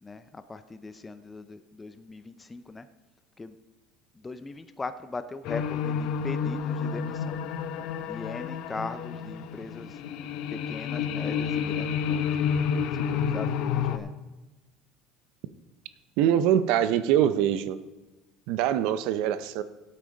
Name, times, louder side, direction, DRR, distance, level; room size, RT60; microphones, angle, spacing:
voice 1, 0.0-2.9 3.4-3.6 4.1-7.4 8.0-10.0 10.5-12.3 12.9-14.1, left 3 dB, 15° left, 10 dB, 0.5 m, -40 dB
sound 1, 5.4-14.0, left 7 dB, 65° left, 0.7 m, -30 dB
voice 2, 16.2-17.8 18.5-19.6, right 10 dB, 70° right, 13 dB, 0.6 m, -23 dB
15.5 x 8.6 x 4.0 m, 1.1 s
cardioid pair, 130°, 0 cm